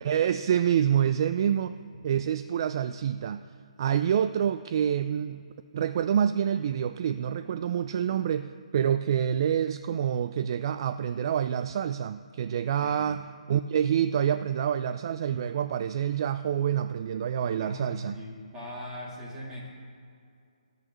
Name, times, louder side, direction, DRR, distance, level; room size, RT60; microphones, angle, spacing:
voice 1, 0.0-1.8 2.0-3.5 3.8-5.4 5.7-18.2, right 9 dB, 40° right, 12 dB, 0.3 m, -27 dB
voice 2, 17.6-19.7, equal, 15° right, -5 dB, 2.6 m, -40 dB
19.5 x 8.0 x 3.1 m, 2.4 s
hypercardioid pair, 155°, 4 cm